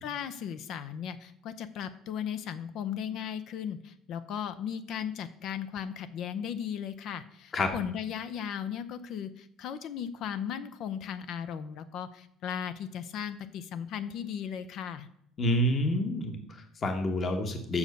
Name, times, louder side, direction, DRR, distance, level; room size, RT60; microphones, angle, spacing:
voice 1, 0.0-15.1, left 8 dB, 55° left, 12 dB, 0.6 m, -36 dB
voice 2, 15.4-17.8, left 1 dB, 30° left, 5 dB, 1.1 m, -28 dB
7.2 x 6.3 x 6.6 m, 0.72 s
cardioid pair, 145°, 0 cm